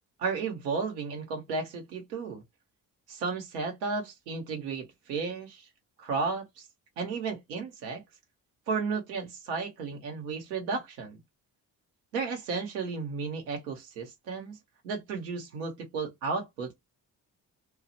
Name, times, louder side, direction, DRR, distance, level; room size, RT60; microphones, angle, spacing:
voice 1, 0.2-2.4 3.1-5.7 6.0-6.7 7.0-8.0 8.7-11.2 12.1-14.6 14.8-16.7, right 4 dB, 85° right, 0.9 m, -33 dB
2.3 x 2.0 x 2.6 m
hypercardioid pair, 40°, 48 cm